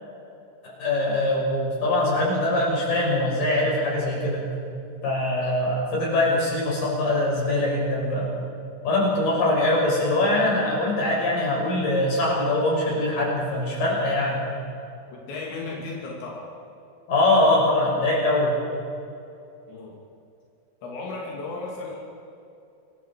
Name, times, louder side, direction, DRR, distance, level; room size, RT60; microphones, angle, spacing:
voice 1, 0.6-4.4 5.0-8.4 8.8-14.4 17.1-18.6, left 1 dB, 55° left, -3 dB, 7.8 m, -23 dB
voice 2, 15.1-16.5 19.7-20.0 20.8-22.0, left 3 dB, 90° left, -3 dB, 5.0 m, -35 dB
28.0 x 22.5 x 4.8 m, 2.6 s
omnidirectional pair, 4.9 m